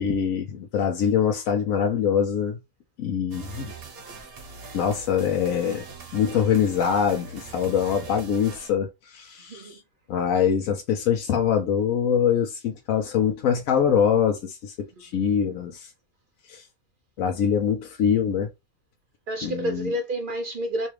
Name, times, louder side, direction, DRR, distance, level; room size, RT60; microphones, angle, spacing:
voice 1, 0.0-2.6 3.0-3.7 4.7-5.8 6.1-9.8 10.1-14.7 15.0-15.9 16.5-16.6 17.2-18.5 19.4-19.9, left 8 dB, 75° left, 1.0 m, -24 dB
sound 1, 3.3-8.7, right 4 dB, 50° right, 1.0 m, -42 dB
voice 2, 9.3-9.8 15.1-15.4 19.3-20.9, right 1 dB, 65° right, 0.5 m, -30 dB
4.1 x 2.4 x 3.2 m
omnidirectional pair, 1.5 m